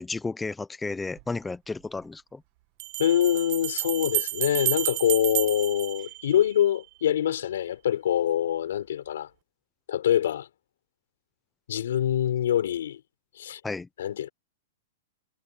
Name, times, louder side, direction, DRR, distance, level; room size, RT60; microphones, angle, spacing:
voice 1, 0.0-2.4 13.6-13.9, left 3 dB, 10° left, 0.6 m, -33 dB
sound 1, 1.2-1.3 2.8-6.8, right 21 dB, 45° right, 1.4 m, -31 dB
voice 2, 3.0-9.3 9.9-10.5 11.7-13.0 13.4-13.6 14.0-14.3, left 10 dB, 80° left, 4.4 m, -25 dB
hypercardioid pair, 145°, 0 cm